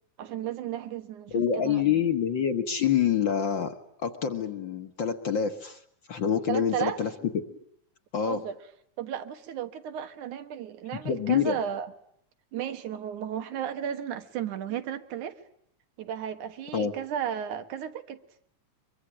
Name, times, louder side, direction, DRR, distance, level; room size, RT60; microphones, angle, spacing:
voice 1, 0.2-2.0 6.5-7.0 8.2-8.5 9.0-11.9 12.5-15.4 16.0-18.2, right 9 dB, 90° right, 2.9 m, -34 dB
voice 2, 1.3-5.8 6.1-7.1 7.5-7.6 8.1-8.4 11.0-11.6 16.7-16.9, left 8 dB, 50° left, 1.7 m, -26 dB
24.0 x 23.0 x 10.0 m
omnidirectional pair, 3.4 m